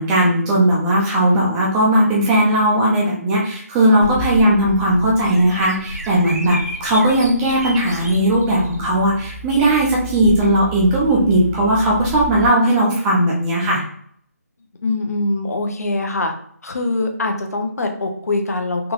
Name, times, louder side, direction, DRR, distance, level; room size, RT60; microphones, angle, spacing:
voice 1, 0.0-13.8, right 1 dB, 5° right, -4 dB, 0.3 m, -17 dB
Bird vocalization bird call bird song, 4.0-12.5, equal, 80° right, 0.9 m, -31 dB
voice 2, 14.8-16.3 16.6-18.9, left 2 dB, 70° left, 4 dB, 0.7 m, -23 dB
3.8 x 2.4 x 2.9 m, 0.62 s
figure-of-eight pair, 170°, 9 cm